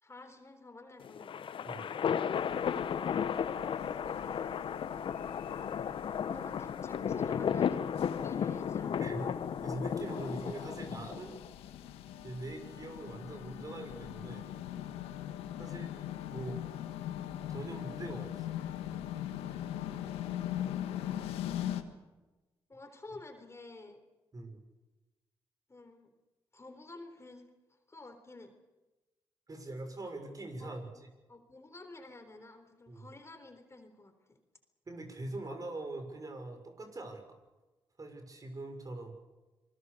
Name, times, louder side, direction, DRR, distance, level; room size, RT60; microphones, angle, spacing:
voice 1, 0.0-1.5 6.3-7.8 8.2-9.3 15.6-15.9 22.7-24.0 25.7-26.1 26.5-27.5 27.9-28.5 30.6-30.9 31.3-34.4, left 2 dB, 30° left, 7 dB, 3.8 m, -50 dB
sound 1, 1.0-11.5, left 8 dB, 60° left, 1.2 m, -34 dB
sound 2, 2.3-21.8, left 11 dB, 85° left, 1.5 m, -41 dB
voice 2, 9.0-9.3 9.6-11.3 12.2-14.4 15.6-15.9 16.3-16.6 17.5-18.6 24.3-24.6 29.5-30.9 32.9-33.1 34.9-37.4 38.0-39.1, right 2 dB, 35° right, 6 dB, 6.2 m, -42 dB
27.0 x 20.5 x 6.8 m, 1.1 s
supercardioid pair, 50°, 10 cm